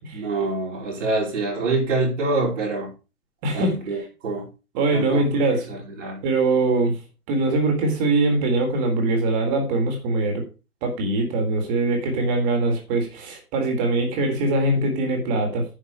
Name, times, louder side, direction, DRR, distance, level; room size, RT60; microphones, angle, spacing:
voice 1, 0.1-2.9 3.5-4.5 4.9-5.4 5.7-6.2, right 3 dB, 50° right, -3 dB, 5.5 m, -26 dB
voice 2, 3.4-3.8 4.7-5.7 6.2-7.0 7.3-10.5 10.8-15.7, right 2 dB, 25° right, 3 dB, 4.0 m, -22 dB
10.0 x 7.4 x 4.7 m, 0.31 s
figure-of-eight pair, 130°, 46 cm